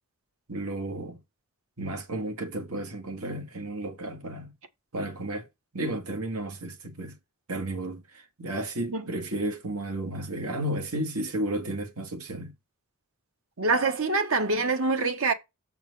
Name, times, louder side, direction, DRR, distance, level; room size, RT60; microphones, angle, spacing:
voice 1, 0.5-1.2 1.8-4.5 4.9-5.5 5.7-7.2 7.5-12.5, right 1 dB, 85° right, 1.8 m, -33 dB
voice 2, 13.6-15.3, right 3 dB, 70° right, 1.2 m, -25 dB
7.5 x 4.6 x 5.4 m
head